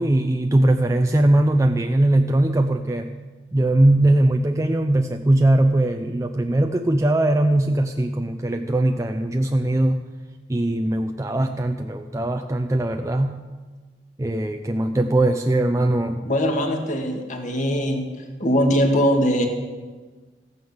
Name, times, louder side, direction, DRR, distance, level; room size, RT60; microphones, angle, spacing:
voice 1, 0.0-3.1 3.5-10.0 10.5-13.4 14.2-16.3, right 1 dB, 20° right, 5 dB, 0.5 m, -20 dB
voice 2, 16.2-18.0 18.4-19.5, equal, 45° left, 3 dB, 2.1 m, -21 dB
15.0 x 9.3 x 7.2 m, 1.4 s
head